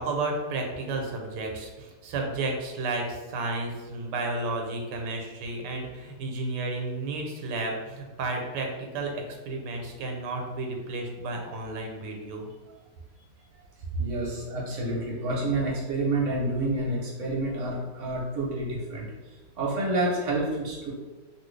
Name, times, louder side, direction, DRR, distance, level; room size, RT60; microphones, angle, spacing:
voice 1, 0.0-12.5, right 2 dB, 80° right, 2 dB, 1.2 m, -32 dB
voice 2, 14.0-20.9, right 2 dB, 55° right, -4 dB, 1.0 m, -29 dB
2.9 x 2.6 x 3.1 m, 1.3 s
omnidirectional pair, 1.8 m